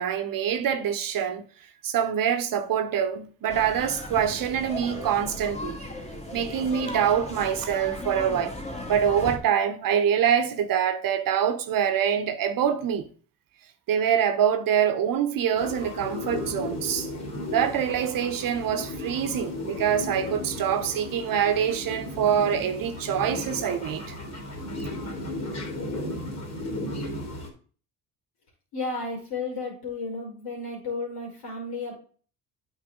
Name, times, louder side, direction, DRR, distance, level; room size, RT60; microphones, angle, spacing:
voice 1, 0.0-1.5 1.8-5.8 6.3-8.6 8.9-13.1 13.9-17.1 17.5-24.2, right 8 dB, 55° right, 0.8 m, -25 dB
sound 1, 3.5-9.4, left 1 dB, 15° left, 1.8 m, -36 dB
sound 2, 15.6-27.5, left 1 dB, 40° left, 2.9 m, -35 dB
voice 2, 28.7-31.9, left 3 dB, 65° left, 3.7 m, -33 dB
8.9 x 4.7 x 3.7 m
supercardioid pair, 80°, 40 cm